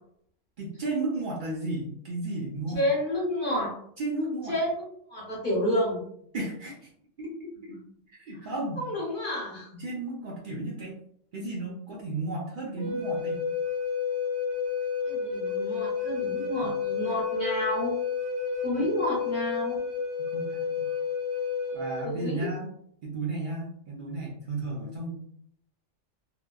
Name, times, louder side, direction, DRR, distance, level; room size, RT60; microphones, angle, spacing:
voice 1, 0.6-2.8 4.0-4.5 6.3-6.9 7.2-7.7 8.2-8.9 9.8-11.0 11.3-13.4 16.6-16.7 20.3-20.9 21.7-22.7 23.0-25.2, right 2 dB, 60° right, -3 dB, 0.5 m, -33 dB
voice 2, 2.7-3.8 4.5-6.0 8.3-8.5 8.8-9.8 15.0-17.9 18.6-19.8 22.0-22.5, left 1 dB, 50° left, -6 dB, 0.8 m, -30 dB
Wind instrument woodwind instrument, 12.8-22.1, left 6 dB, 90° right, 1.0 m, -30 dB
2.8 x 2.1 x 2.2 m, 0.67 s
omnidirectional pair, 1.2 m